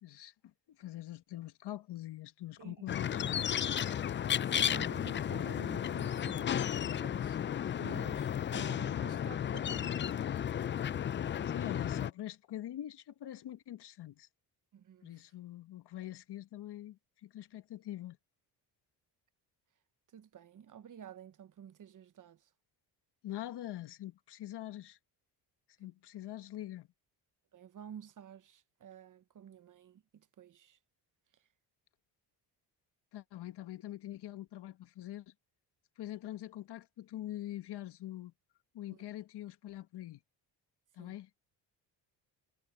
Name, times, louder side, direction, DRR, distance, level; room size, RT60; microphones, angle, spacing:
voice 1, 0.0-3.2 11.4-14.3 15.0-18.2 23.2-25.0 25.8-26.9 33.1-35.3 36.0-38.3 38.7-40.2 40.9-41.3, left 13 dB, 65° left, 1.6 m, -44 dB
sound 1, 2.9-12.1, left 9 dB, 30° left, 0.4 m, -33 dB
voice 2, 4.2-7.4 7.7-9.9 14.7-15.2 20.1-22.5 27.5-30.8 38.9-39.0 41.0-41.1, right 9 dB, 45° right, 1.1 m, -51 dB
cardioid pair, 95°, 44 cm